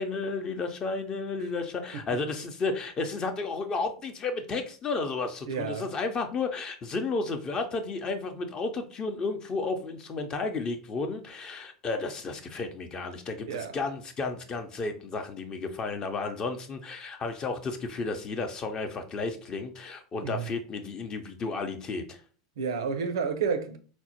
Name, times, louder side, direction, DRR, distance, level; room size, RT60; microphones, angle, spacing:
voice 1, 0.0-22.2, left 3 dB, 30° left, 0.6 m, -32 dB
voice 2, 5.5-5.9 13.5-13.7 20.2-20.5 22.6-23.8, right 6 dB, 75° right, 0.5 m, -30 dB
4.2 x 2.1 x 2.8 m
hypercardioid pair, 95°, 2 cm